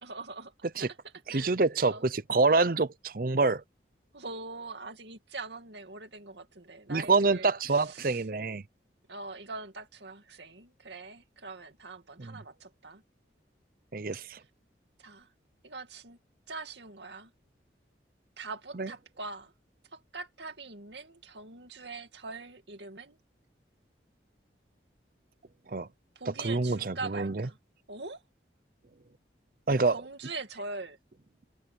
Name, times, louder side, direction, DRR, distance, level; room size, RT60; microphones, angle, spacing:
voice 1, 0.0-0.5 0.8-1.0 1.3-1.6 1.8-2.0 4.1-8.2 9.1-13.0 15.0-15.3 15.6-16.2 16.5-17.3 18.4-19.5 19.9-23.2 26.2-27.6 27.9-28.2 29.9-31.0, right 3 dB, 75° right, 2.5 m, -42 dB
voice 2, 1.3-3.6 6.9-8.6 12.2-12.4 13.9-14.4 18.8-18.9 25.7-25.9 26.4-27.5 29.7-30.0, right 3 dB, 50° right, 0.7 m, -26 dB
head